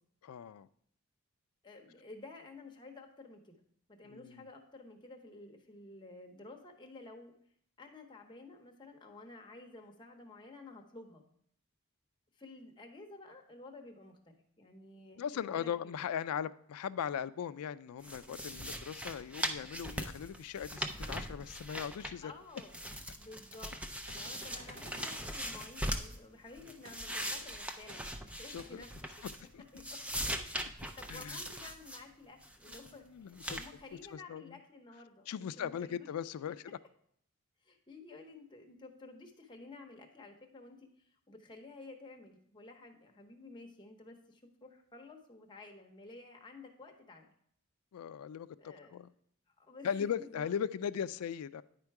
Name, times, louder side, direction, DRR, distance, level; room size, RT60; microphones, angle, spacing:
voice 1, 0.2-0.7 4.0-4.4 15.2-22.3 26.6-26.7 27.1-27.4 28.5-28.8 29.5-29.6 31.1-31.4 32.7-32.8 33.1-33.6 34.1-34.6 35.3-36.8 47.9-48.5 48.9-49.1 49.8-51.6, left 8 dB, 85° left, 0.3 m, -39 dB
voice 2, 1.6-3.5 3.9-7.3 7.8-11.2 12.3-16.0 22.2-22.8 23.2-23.8 24.1-29.3 29.7-30.0 31.0-33.1 33.5-36.1 37.6-47.3 48.6-49.0 49.6-50.5, left 3 dB, 20° left, 0.9 m, -52 dB
sound 1, 18.0-22.3 22.6-26.2 26.6-29.5 29.8-32.0 32.4-32.9 33.4-33.7, equal, 5° right, 0.3 m, -40 dB
sound 2, 24.1-25.2 26.8-26.9 27.2-27.3 27.9-28.0 28.6-28.7, right 1 dB, 65° right, 1.3 m, -51 dB
9.9 x 4.4 x 4.7 m
head